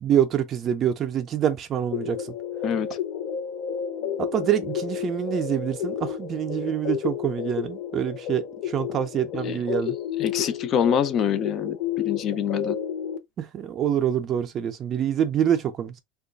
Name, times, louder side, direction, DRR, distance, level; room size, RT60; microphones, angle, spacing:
voice 1, 0.0-2.3 4.2-10.0 13.4-16.0, right 9 dB, 35° right, 0.4 m, -26 dB
sound 1, 1.9-13.2, left 9 dB, 60° left, 0.7 m, -31 dB
voice 2, 2.6-3.0 9.4-9.6 10.2-12.8, left 8 dB, 40° left, 0.3 m, -25 dB
3.0 x 2.3 x 3.8 m
cardioid pair, 145°, 0 cm